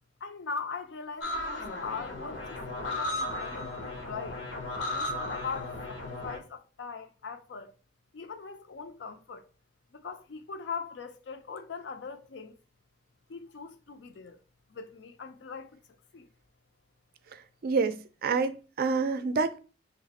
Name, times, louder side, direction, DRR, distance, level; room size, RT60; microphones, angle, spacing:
voice 1, 0.2-4.4 4.9-7.7 8.1-9.4 9.9-12.6 13.3-14.4 14.7-15.8 16.1-16.3, left 5 dB, 70° left, 0.5 m, -40 dB
sound 1, 1.2-6.4, left 1 dB, 85° left, 0.9 m, -35 dB
voice 2, 17.3-19.6, right 4 dB, 55° right, 0.4 m, -28 dB
3.1 x 2.5 x 4.0 m
head